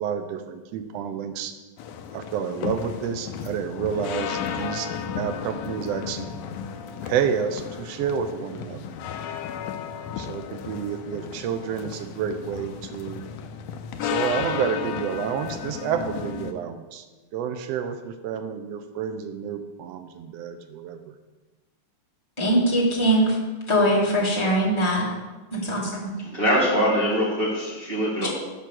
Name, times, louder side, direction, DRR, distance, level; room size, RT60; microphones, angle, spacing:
voice 1, 0.0-1.5 2.1-4.9 5.2-6.3 7.0-8.9 10.2-13.2 14.0-17.0 17.3-21.2, right 7 dB, 80° right, 8 dB, 1.5 m, -29 dB
sound 1, 1.8-16.5, left 7 dB, 85° left, 2.1 m, -33 dB
voice 2, 22.4-23.4 23.7-25.0 25.5-26.1 28.2-28.3, right 1 dB, 30° left, -5 dB, 0.5 m, -21 dB
voice 3, 26.2-28.3, equal, 45° right, -5 dB, 0.7 m, -23 dB
7.4 x 5.4 x 6.2 m, 1.2 s
omnidirectional pair, 3.5 m